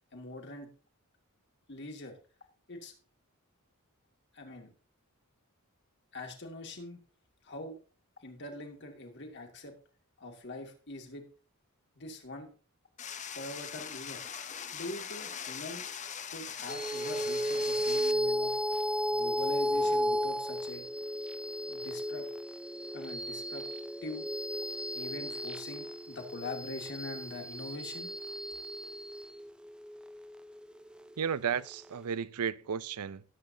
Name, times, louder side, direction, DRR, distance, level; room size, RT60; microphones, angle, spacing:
voice 1, 0.1-0.7 1.7-2.1 2.7-2.9 4.3-4.7 6.1-7.0 7.4-7.8 8.2-9.7 10.2-11.2 12.0-12.5 13.4-14.2 14.7-15.9 16.3-18.6 19.1-20.9 21.7-22.3 22.9-23.6 24.0-24.2 24.9-28.1, left 2 dB, 50° left, 2.3 m, -43 dB
sound 1, 13.0-18.1, left 8 dB, 35° left, 0.7 m, -41 dB
sound 2, 16.7-31.4, equal, 5° right, 0.4 m, -34 dB
voice 2, 31.2-33.2, right 7 dB, 90° right, 0.5 m, -33 dB
17.5 x 8.1 x 2.8 m
head